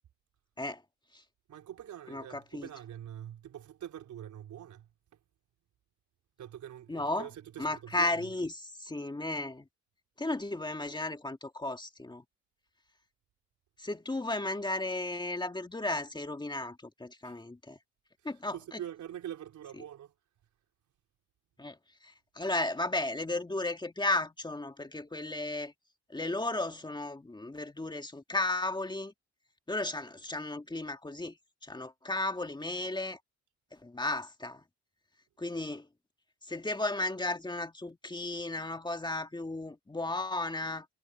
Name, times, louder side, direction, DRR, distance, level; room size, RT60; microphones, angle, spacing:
voice 1, 1.5-4.9 6.4-8.3 17.2-17.4 18.5-20.1 21.6-21.7, right 11 dB, 70° right, 4.2 m, -44 dB
voice 2, 2.1-2.7 6.9-7.3 7.6-9.7 10.2-12.2 13.8-17.8 18.2-18.6 21.6-21.8 22.0-25.7 26.1-29.1 29.7-31.4 31.6-33.2 33.8-34.6 35.4-35.9 36.5-40.9, left 2 dB, 15° left, 1.9 m, -34 dB
cardioid pair, 90°, 30 cm